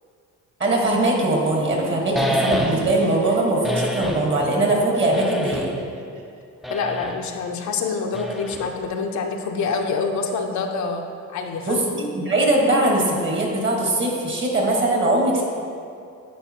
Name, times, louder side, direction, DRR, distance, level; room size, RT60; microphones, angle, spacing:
voice 1, 0.6-5.7 11.6-15.4, right 2 dB, 40° right, -1 dB, 1.5 m, -21 dB
Laughter, 1.3-6.4, right 3 dB, 90° right, 0.8 m, -37 dB
sound 1, 2.1-3.1 3.6-4.3 5.1-5.9 6.6-7.2 8.1-8.8, equal, ahead, 0.4 m, -27 dB
voice 2, 6.7-11.0 11.3-11.8, left 4 dB, 70° left, 3 dB, 0.7 m, -26 dB
10.5 x 4.4 x 2.9 m, 2.4 s
cardioid pair, 90°, 30 cm